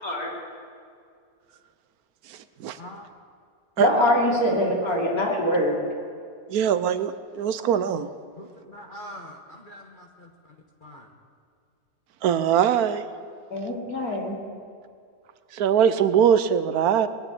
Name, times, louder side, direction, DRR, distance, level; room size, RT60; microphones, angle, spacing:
voice 1, 0.0-0.3 3.8-5.8 13.5-14.4, left 1 dB, 65° left, -2 dB, 3.3 m, -23 dB
voice 2, 2.3-2.8 3.8-3.9 6.5-8.1 12.2-13.0 15.5-17.1, right 8 dB, 70° right, 13 dB, 1.1 m, -22 dB
voice 3, 8.4-10.5 10.8-11.1, equal, 35° left, 1 dB, 1.1 m, -43 dB
20.0 x 7.0 x 9.6 m, 2.2 s
omnidirectional pair, 1.7 m